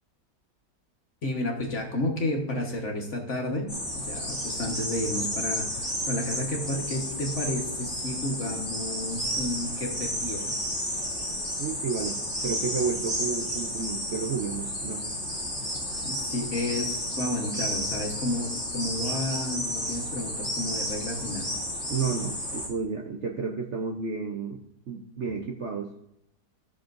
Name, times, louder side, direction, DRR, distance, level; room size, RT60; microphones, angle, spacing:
voice 1, 1.2-3.7 3.9-10.6 16.0-21.5, left 1 dB, 45° left, 1 dB, 1.4 m, -31 dB
sound 1, 3.7-22.7, equal, 5° right, 1.9 m, -32 dB
voice 2, 11.6-15.1 21.9-25.9, right 5 dB, 55° right, 1 dB, 0.8 m, -32 dB
14.5 x 6.5 x 2.6 m, 0.77 s
omnidirectional pair, 1.9 m